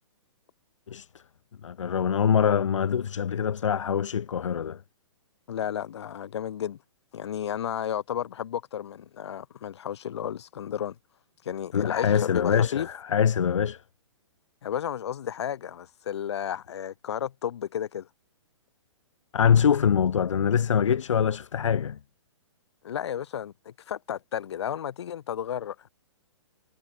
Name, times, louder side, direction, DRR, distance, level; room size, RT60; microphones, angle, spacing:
voice 1, 1.6-4.8 11.7-13.8 19.3-22.0, left 8 dB, 75° left, 0.5 m, -24 dB
voice 2, 5.5-6.8 7.1-11.0 11.4-12.9 14.6-18.1 22.8-25.7, left 9 dB, 60° left, 1.8 m, -33 dB
figure-of-eight pair, 120°, 16 cm